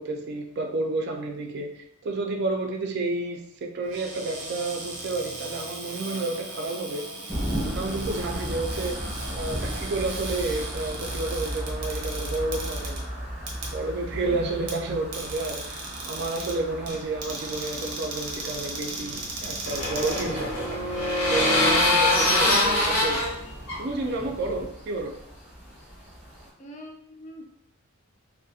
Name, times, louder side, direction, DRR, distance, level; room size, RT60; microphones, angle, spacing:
voice 1, 0.0-7.0 7.8-9.0 9.3-13.0 13.7-20.7 21.3-23.2 23.8-25.2, right 2 dB, 50° right, 2 dB, 0.3 m, -30 dB
Cupboard open or close, 3.8-20.9, right 2 dB, 90° right, 0.6 m, -38 dB
sound 1, 7.3-26.5, equal, 5° right, 0.7 m, -36 dB
sound 2, 19.1-24.6, left 1 dB, 85° left, 0.6 m, -24 dB
voice 2, 26.6-27.4, equal, 35° left, -1 dB, 0.4 m, -43 dB
2.3 x 2.1 x 2.7 m, 0.74 s
head